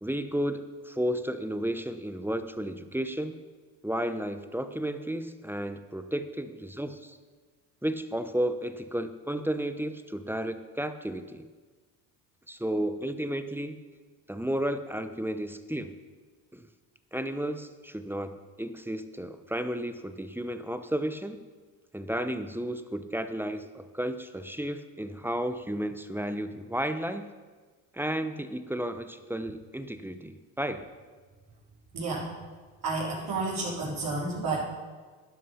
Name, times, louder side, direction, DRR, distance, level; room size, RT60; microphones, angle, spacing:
voice 1, 0.0-3.4 3.8-7.2 7.8-11.5 12.5-13.8 14.3-15.9 16.5-16.7 17.1-18.3 18.6-21.4 21.9-27.3 27.9-30.8, right 1 dB, 5° right, 9 dB, 0.9 m, -33 dB
voice 2, 31.9-32.3 32.8-34.6, right 3 dB, 45° right, -8 dB, 4.5 m, -31 dB
12.0 x 10.5 x 5.8 m, 1.4 s
hypercardioid pair, 70°, 46 cm